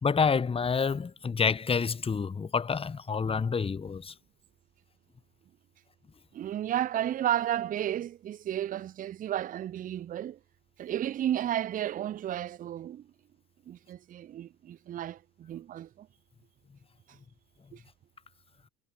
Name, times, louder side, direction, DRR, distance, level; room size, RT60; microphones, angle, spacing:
voice 1, 0.0-4.1, left 5 dB, 15° left, 1.0 m, -28 dB
voice 2, 6.3-10.4 10.8-13.1 13.7-16.1 17.7-17.8, right 11 dB, 20° right, 0.5 m, -33 dB
figure-of-eight pair, 75°, 44 cm